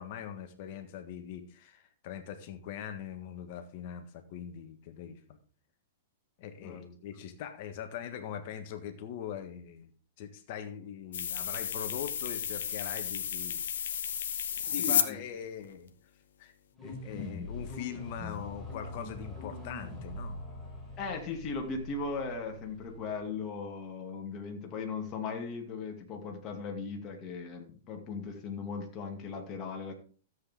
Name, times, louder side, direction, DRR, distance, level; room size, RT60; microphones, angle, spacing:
voice 1, 0.0-5.4 6.4-9.9 10.2-13.8 14.7-15.9 16.4-16.5 16.8-20.4, left 9 dB, 50° left, 8 dB, 1.6 m, -42 dB
sound 1, 11.1-15.0, left 8 dB, 65° left, 1.0 m, -32 dB
voice 2, 14.8-15.2 17.1-17.4 21.0-29.9, left 4 dB, 35° left, 2 dB, 2.5 m, -38 dB
sound 2, 16.7-23.4, left 1 dB, ahead, 5.3 m, -43 dB
13.5 x 8.0 x 3.8 m, 0.41 s
figure-of-eight pair, 105°, 0 cm